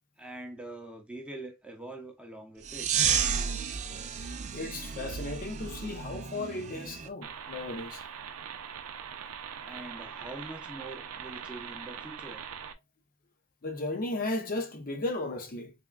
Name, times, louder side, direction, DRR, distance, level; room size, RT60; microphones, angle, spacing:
voice 1, 0.2-2.9 9.6-12.4, right 2 dB, 5° right, 0.7 m, -44 dB
sound 1, 2.6-7.1, right 7 dB, 35° right, 0.4 m, -32 dB
voice 2, 4.5-8.0 13.6-15.7, left 2 dB, 40° left, 0.6 m, -35 dB
sound 2, 7.2-12.7, right 7 dB, 90° right, 0.5 m, -42 dB
3.5 x 3.5 x 2.3 m
head